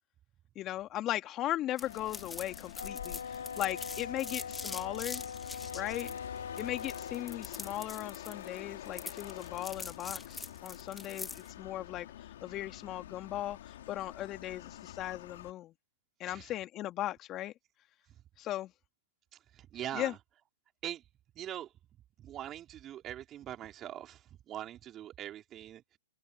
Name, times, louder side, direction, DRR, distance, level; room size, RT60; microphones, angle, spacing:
voice 1, 0.6-5.2 5.7-6.1 6.6-15.7 16.2-17.5 18.4-18.7 19.9-20.1, left 14 dB, 30° left, 2.3 m, -38 dB
sound 1, 1.8-15.5, left 12 dB, 65° left, 3.3 m, -47 dB
sound 2, 1.8-11.5, left 4 dB, 10° left, 2.9 m, -44 dB
Wind instrument woodwind instrument, 2.7-7.3, left 6 dB, 85° left, 5.7 m, -42 dB
voice 2, 19.3-20.2 20.8-21.1 21.4-21.7 22.2-26.0, right 11 dB, 30° right, 4.2 m, -42 dB
hypercardioid pair, 115°, 0 cm